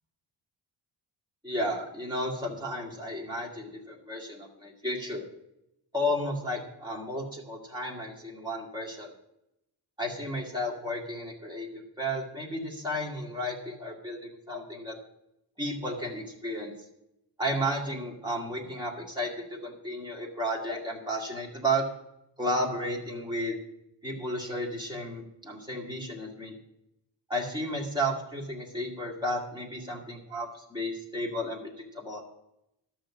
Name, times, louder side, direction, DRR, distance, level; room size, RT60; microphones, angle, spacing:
voice 1, 1.4-5.2 5.9-9.1 10.0-15.0 15.6-16.7 17.4-21.8 22.4-23.6 24.0-26.5 27.3-32.2, equal, 10° right, -3 dB, 2.1 m, -33 dB
13.0 x 6.5 x 6.1 m, 0.83 s
wide cardioid pair, 175°, 43 cm